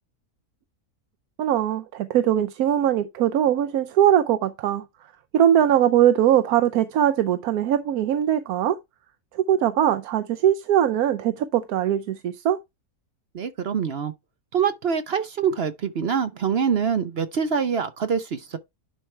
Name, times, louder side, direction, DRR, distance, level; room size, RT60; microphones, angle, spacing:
voice 1, 1.4-4.9 5.3-8.8 9.3-12.6, right 10 dB, 80° right, 1.1 m, -21 dB
voice 2, 13.3-14.1 14.5-18.6, right 7 dB, 50° right, 0.8 m, -25 dB
11.0 x 4.5 x 3.2 m
omnidirectional pair, 1.6 m